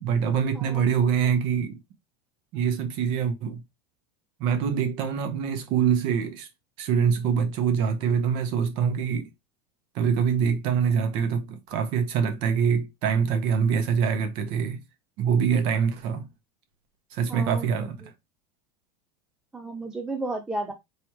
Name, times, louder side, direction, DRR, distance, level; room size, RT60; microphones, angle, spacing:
voice 1, 0.0-1.8 2.5-3.6 4.4-6.5 6.8-9.3 9.9-14.8 15.2-16.3 17.1-18.0, right 7 dB, 40° right, 0.9 m, -24 dB
voice 2, 0.5-0.9 17.3-17.7 19.5-20.7, right 2 dB, 5° right, 0.3 m, -33 dB
4.7 x 3.4 x 3.0 m
supercardioid pair, 175°, 14 cm